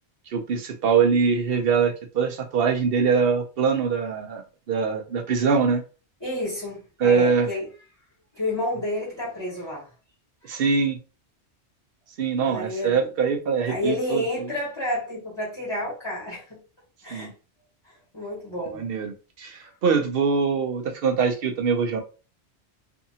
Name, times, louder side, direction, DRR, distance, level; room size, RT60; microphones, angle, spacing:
voice 1, 0.3-4.4 4.7-5.8 7.0-7.5 10.4-11.0 12.2-14.2 17.1-17.3 18.7-22.0, right 5 dB, 65° right, 0.7 m, -23 dB
voice 2, 6.2-7.7 8.3-9.9 10.4-10.6 12.4-13.0 13.7-16.6 17.0-17.3 18.1-18.8 19.6-19.7, left 1 dB, 25° left, 1.0 m, -30 dB
2.6 x 2.5 x 2.7 m
omnidirectional pair, 1.1 m